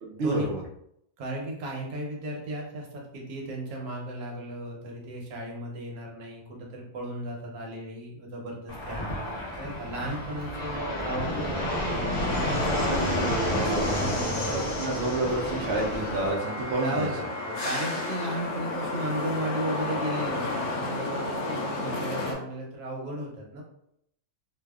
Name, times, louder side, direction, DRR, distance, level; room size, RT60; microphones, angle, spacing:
voice 1, 0.0-0.6 14.5-17.1, right 2 dB, 60° right, -2 dB, 0.7 m, -29 dB
voice 2, 1.2-14.5 16.8-23.6, right 1 dB, 85° right, -1 dB, 1.2 m, -35 dB
Fixed-wing aircraft airplane, 8.7-16.3, equal, 80° left, 0.3 m, -30 dB
sound 1, 12.3-22.3, left 2 dB, 65° left, 0.9 m, -33 dB
2.7 x 2.3 x 2.2 m, 0.74 s
omnidirectional pair, 1.5 m